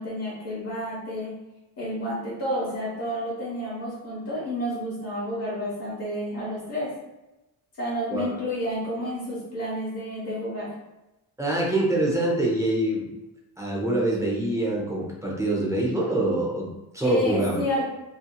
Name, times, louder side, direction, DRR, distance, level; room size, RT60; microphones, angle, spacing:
voice 1, 0.0-1.3 1.8-6.9 7.8-10.7 17.0-17.8, equal, 40° left, -7 dB, 1.0 m, -30 dB
voice 2, 11.4-13.1 13.6-17.6, right 1 dB, 10° right, -4 dB, 0.5 m, -25 dB
2.7 x 2.5 x 2.2 m, 0.98 s
cardioid pair, 140°, 38 cm